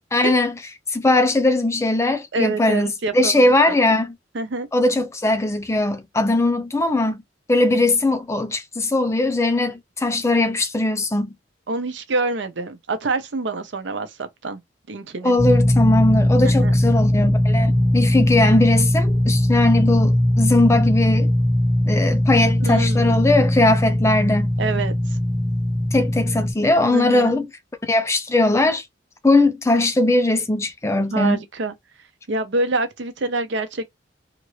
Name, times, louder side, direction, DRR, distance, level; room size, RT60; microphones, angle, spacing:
voice 1, 0.1-0.5 0.9-4.1 4.7-7.2 7.5-11.3 15.2-21.3 21.9-24.5 25.9-27.5 27.9-28.8 29.2-31.4, left 2 dB, 15° left, 0.4 m, -19 dB
voice 2, 2.3-3.8 4.3-4.7 11.7-14.6 14.9-15.4 16.6-16.7 22.6-23.2 24.6-25.2 26.9-27.3 31.1-31.7 32.3-33.9, right 3 dB, 65° right, 0.6 m, -26 dB
sound 1, 15.4-26.5, left 1 dB, 30° right, 1.3 m, -19 dB
2.9 x 2.5 x 3.1 m
head